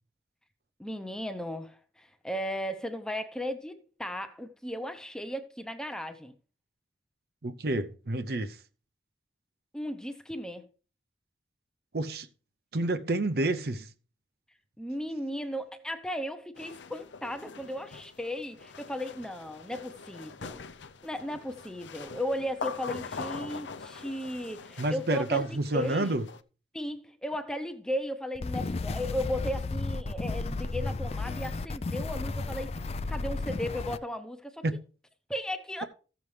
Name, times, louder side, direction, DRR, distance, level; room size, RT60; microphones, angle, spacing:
voice 1, 0.8-6.3 9.7-10.7 14.8-20.6 21.0-26.2 26.7-32.7 33.1-34.7 35.3-35.8, equal, 5° left, 0.7 m, -36 dB
voice 2, 7.4-8.6 11.9-12.3 12.7-13.9 24.8-26.3 34.6-34.8, right 2 dB, 55° right, 0.7 m, -29 dB
sound 1, 16.6-26.4, left 4 dB, 80° left, 0.7 m, -43 dB
sound 2, 28.3-34.0, left 3 dB, 35° left, 0.4 m, -33 dB
15.0 x 7.0 x 3.3 m
head